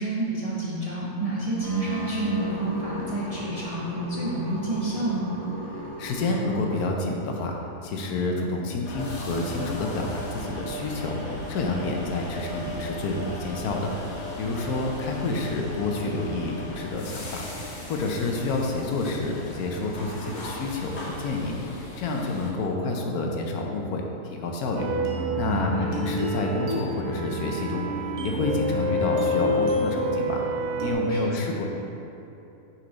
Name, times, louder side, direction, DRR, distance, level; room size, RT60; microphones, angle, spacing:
voice 1, 0.0-5.3 25.5-26.0 31.1-31.3, right 2 dB, 35° right, -8 dB, 0.7 m, -29 dB
sound 1, 1.6-6.8, left 1 dB, 25° left, 1.4 m, -37 dB
voice 2, 5.8-7.6 7.8-13.9 14.4-17.4 17.9-24.9 25.4-25.7 26.0-27.9 28.2-30.4 30.8-31.7, left 3 dB, 75° left, 1 dB, 1.1 m, -29 dB
sound 2, 8.8-22.5, equal, 50° left, 1.1 m, -37 dB
sound 3, 24.8-30.9, equal, 80° right, 1.3 m, -27 dB
6.2 x 4.5 x 3.9 m, 2.9 s
omnidirectional pair, 1.7 m